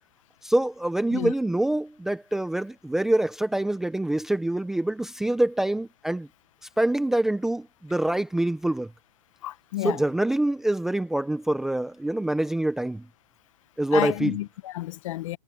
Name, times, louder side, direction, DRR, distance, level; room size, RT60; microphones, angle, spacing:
voice 1, 0.4-6.3 6.8-8.9 9.8-13.0 13.8-14.4, right 1 dB, ahead, 0.6 m, -25 dB
voice 2, 9.4-10.0 13.9-15.4, left 15 dB, 55° left, 0.9 m, -30 dB
supercardioid pair, 170°, 20 cm